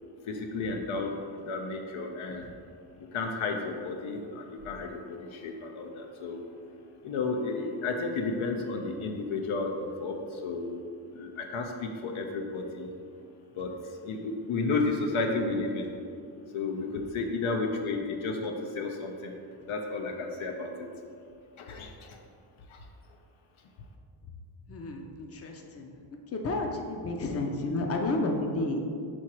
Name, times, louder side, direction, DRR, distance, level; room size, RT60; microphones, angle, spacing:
voice 1, 0.3-2.5 3.0-6.4 7.0-10.8 11.1-12.9 13.6-13.7 14.0-15.9 16.5-19.3 19.7-20.9 21.6-22.2 22.7-22.8, left 3 dB, 85° left, 2 dB, 0.7 m, -32 dB
voice 2, 24.7-26.0 26.3-28.9, left 2 dB, 30° left, 2 dB, 0.5 m, -31 dB
4.7 x 4.4 x 4.5 m, 2.4 s
wide cardioid pair, 115°, 47 cm